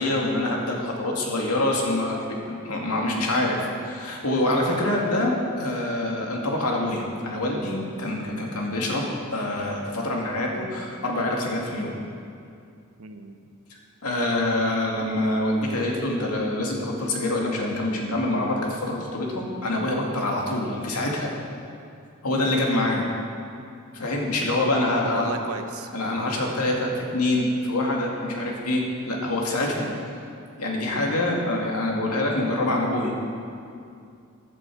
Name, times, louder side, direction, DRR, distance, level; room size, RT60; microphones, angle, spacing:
voice 1, 0.0-2.2 2.5-12.0 14.0-21.3 22.2-23.1 23.9-25.4 25.9-29.9 30.6-33.1, left 1 dB, 90° left, -1 dB, 2.2 m, -25 dB
voice 2, 13.0-13.4 22.3-22.6 25.0-25.9 29.8-30.0, right 4 dB, 75° right, 7 dB, 0.9 m, -36 dB
14.0 x 11.0 x 4.7 m, 2.4 s
head